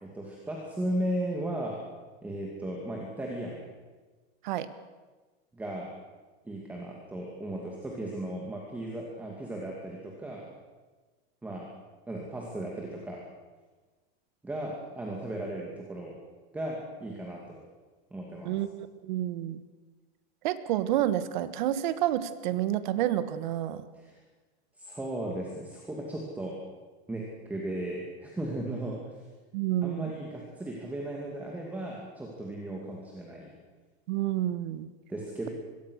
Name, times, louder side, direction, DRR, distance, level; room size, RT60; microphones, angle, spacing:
voice 1, 0.0-1.8 2.2-3.6 5.5-5.9 6.4-10.4 11.4-11.7 12.1-13.2 14.4-16.1 16.5-17.6 18.1-18.5 23.9-24.1 24.8-26.6 27.1-29.2 29.8-33.5 35.1-35.5, right 1 dB, 5° right, -1 dB, 2.4 m, -36 dB
voice 2, 19.0-19.6 20.4-23.8 29.5-30.1 34.1-34.9, right 12 dB, 50° right, 13 dB, 1.4 m, -29 dB
25.0 x 21.5 x 6.4 m, 1.3 s
supercardioid pair, 170°, 32 cm